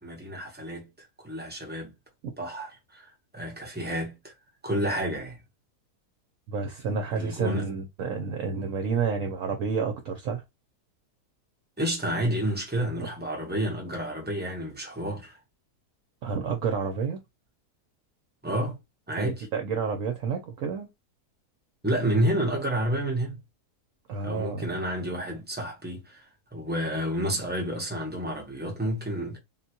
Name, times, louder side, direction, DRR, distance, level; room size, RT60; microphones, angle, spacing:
voice 1, 0.0-1.9 2.4-4.3 4.6-5.4 7.1-7.7 11.8-15.4 18.4-18.8 19.1-19.5 21.8-23.4 24.2-29.4, right 1 dB, 15° right, 0.4 m, -30 dB
voice 2, 6.5-10.4 13.0-13.1 16.2-17.2 19.2-20.9 24.1-24.7, right 5 dB, 65° right, 0.9 m, -30 dB
3.8 x 2.2 x 2.8 m
omnidirectional pair, 1.7 m